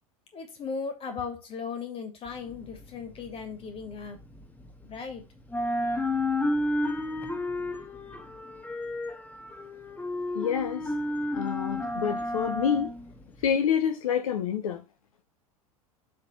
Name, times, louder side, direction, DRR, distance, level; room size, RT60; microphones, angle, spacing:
voice 1, 0.3-4.2 4.8-5.2, left 5 dB, 30° left, 2.8 m, -37 dB
sound 1, 2.3-5.1 5.4-13.6, left 1 dB, 10° left, 1.5 m, -32 dB
voice 2, 10.3-10.9 11.3-12.9 13.4-14.8, left 8 dB, 65° left, 0.9 m, -27 dB
7.6 x 4.2 x 5.7 m
figure-of-eight pair, 80°, 19 cm